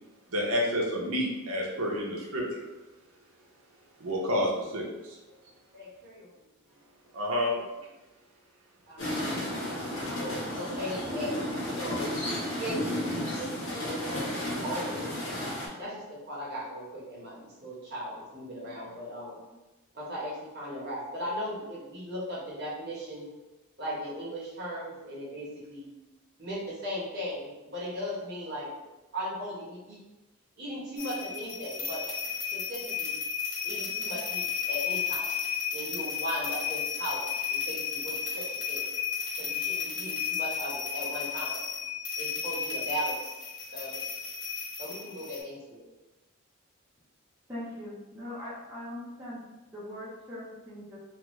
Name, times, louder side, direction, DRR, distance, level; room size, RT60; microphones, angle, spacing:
voice 1, 0.3-2.7 4.0-5.2 7.1-7.5, equal, 85° right, -2 dB, 0.7 m, -29 dB
voice 2, 5.7-6.3 7.5-7.6 8.9-9.3 9.6-11.4 11.8-12.1 12.6-14.3 14.6-15.1 15.8-19.4 19.9-23.3 23.8-25.9 26.4-28.7 29.1-30.0 30.6-32.1 32.5-33.1 33.6-35.3 35.7-38.9 39.4-41.7 42.2-43.2 43.7-44.0 44.8-45.8, equal, 50° right, -7 dB, 1.0 m, -38 dB
sound 1, 9.0-15.7, left 1 dB, 85° left, 1.1 m, -33 dB
sound 2, 31.0-45.4, left 7 dB, 60° left, 0.6 m, -33 dB
voice 3, 47.5-49.4 49.7-51.0, left 1 dB, 10° right, -11 dB, 0.7 m, -41 dB
2.5 x 2.4 x 3.0 m, 1.0 s
head